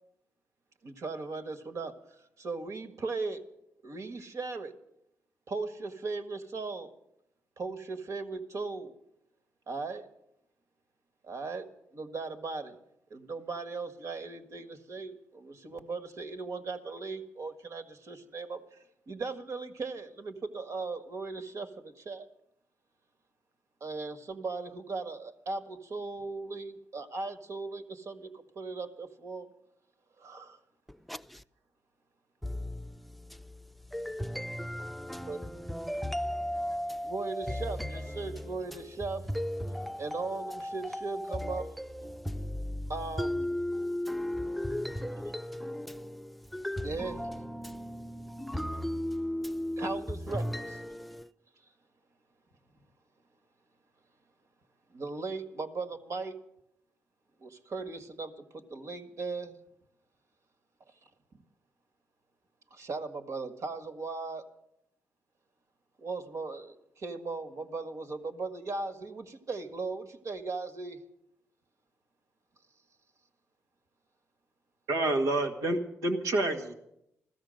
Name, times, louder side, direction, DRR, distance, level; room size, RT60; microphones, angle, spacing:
voice 1, 0.8-3.4 3.8-4.7 5.5-6.9 7.6-9.0 9.7-10.1 11.2-12.8 13.1-22.3 23.8-29.5 30.2-30.6 35.3-35.4 37.0-39.3 40.0-41.7 42.9-43.5 46.8-47.3 49.8-50.8 54.9-56.4 57.4-59.6 62.7-64.5 66.0-71.0, right 3 dB, 65° right, 1.7 m, -38 dB
voice 2, 33.9-35.3 35.7-37.5 39.4-40.0 40.6-40.7 41.3-41.5 42.1-42.4 43.2-46.2 46.5-47.3 47.6-49.8 50.9-51.2, left 1 dB, ahead, 0.6 m, -35 dB
voice 3, 74.9-76.7, right 2 dB, 90° right, 1.6 m, -28 dB
15.5 x 13.5 x 6.4 m
supercardioid pair, 55°, 6 cm